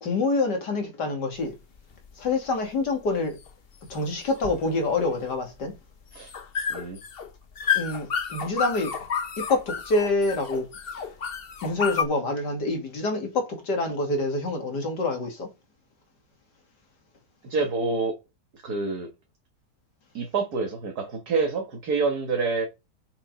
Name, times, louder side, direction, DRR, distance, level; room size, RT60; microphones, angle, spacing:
voice 1, 0.0-1.5 2.2-3.4 3.9-5.7 7.7-9.0 9.4-10.7 11.6-15.5, left 2 dB, 70° left, 3.1 m, -26 dB
sound 1, 1.4-12.0, left 7 dB, 40° left, 1.0 m, -32 dB
voice 2, 17.4-18.1 18.6-19.1 20.1-22.7, right 4 dB, 60° right, 2.2 m, -27 dB
7.3 x 6.9 x 5.0 m
omnidirectional pair, 1.9 m